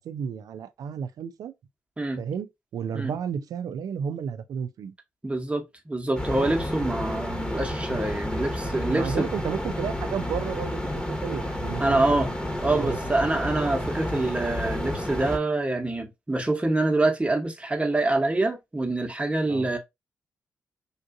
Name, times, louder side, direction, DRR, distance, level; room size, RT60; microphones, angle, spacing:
voice 1, 0.0-1.5 2.2-4.9 8.9-12.0 12.7-13.0 19.5-19.7, right 7 dB, 70° right, 0.4 m, -32 dB
voice 2, 5.2-9.3 11.8-12.3 12.6-19.8, right 2 dB, 20° right, 0.9 m, -26 dB
sound 1, 6.1-15.4, left 1 dB, 15° left, 1.0 m, -31 dB
3.6 x 2.6 x 2.5 m
supercardioid pair, 50°, 6 cm